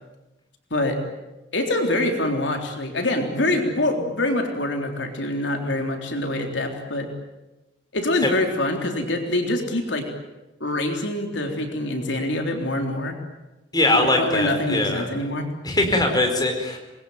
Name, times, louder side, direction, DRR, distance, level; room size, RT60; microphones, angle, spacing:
voice 1, 1.5-7.1 7.9-10.0 10.6-13.2 13.9-15.5, left 1 dB, 70° left, 3 dB, 3.6 m, -25 dB
voice 2, 13.7-15.0 15.6-16.8, left 2 dB, 20° left, 3 dB, 4.6 m, -21 dB
26.5 x 21.5 x 9.4 m, 1.0 s
head